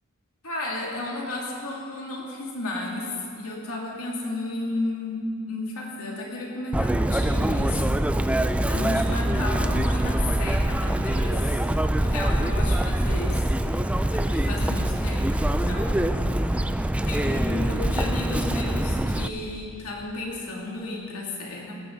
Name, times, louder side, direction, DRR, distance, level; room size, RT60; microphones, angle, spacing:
voice 1, 0.4-3.1 3.4-8.0 8.2-8.3 8.6-11.6 12.0-13.5 14.1-16.6 17.0-21.8, left 2 dB, 75° left, -2 dB, 2.7 m, -33 dB
Chirp tweet, 6.7-19.3, right 1 dB, 5° right, 0.3 m, -24 dB
18.5 x 15.0 x 4.0 m, 2.5 s
head